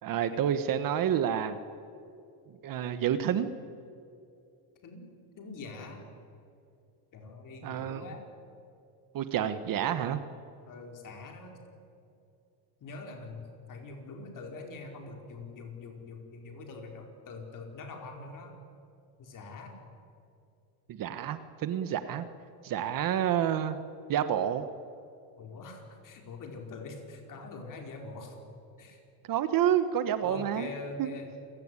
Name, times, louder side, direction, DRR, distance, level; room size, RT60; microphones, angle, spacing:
voice 1, 0.0-1.6 2.5-3.5 7.6-8.0 9.1-10.2 20.9-22.3 22.6-23.8 24.1-24.7 29.3-30.7 31.0-31.1, right 10 dB, 45° right, 11 dB, 1.3 m, -29 dB
voice 2, 5.4-6.0 7.1-8.3 10.7-11.6 12.8-18.5 19.2-19.8 25.4-28.4 28.8-29.0 30.2-31.3, left 3 dB, 40° left, 3 dB, 4.8 m, -44 dB
28.0 x 17.5 x 9.9 m, 2.5 s
cardioid pair, 140°, 48 cm